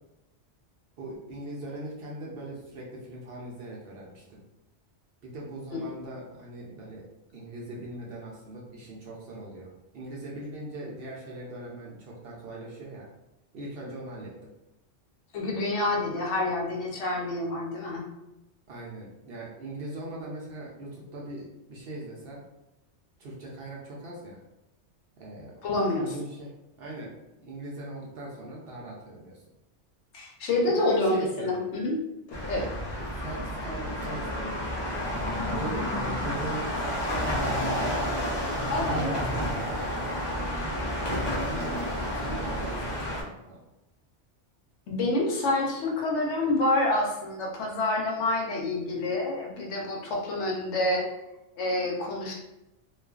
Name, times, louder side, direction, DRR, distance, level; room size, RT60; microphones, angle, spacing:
voice 1, 1.0-4.4 5.2-7.0 7.3-13.1 13.5-14.3 18.7-22.4 23.2-24.4 25.2-25.5 25.9-26.5 26.8-29.3 30.7-31.6 33.0-34.6 35.5-38.1 38.7-39.8 41.0-43.6, right 1 dB, 60° right, -3 dB, 0.7 m, -40 dB
voice 2, 15.3-18.1 25.6-26.1 30.1-32.0 32.3-32.7 38.7-39.2 44.9-51.1 51.6-52.3, left 2 dB, 75° left, -1 dB, 0.9 m, -27 dB
sound 1, 32.3-43.2, equal, 40° left, 0.3 m, -30 dB
2.4 x 2.2 x 2.3 m, 0.91 s
omnidirectional pair, 1.2 m